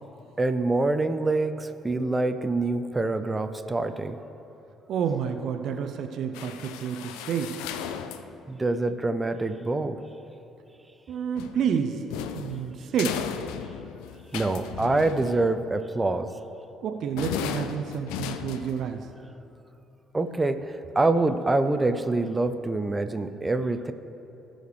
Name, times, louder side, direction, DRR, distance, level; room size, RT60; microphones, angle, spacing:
voice 1, 0.4-4.2 8.5-10.0 14.3-16.3 20.1-23.9, right 2 dB, 20° right, 9 dB, 0.6 m, -25 dB
voice 2, 4.9-7.6 11.1-13.2 16.8-19.1, right 7 dB, 55° right, 7 dB, 0.6 m, -29 dB
sound 1, 6.3-8.4 11.3-15.8 17.2-19.1, left 9 dB, 70° left, 0.4 m, -36 dB
18.0 x 6.5 x 3.3 m, 2.9 s
figure-of-eight pair, 45°, 0 cm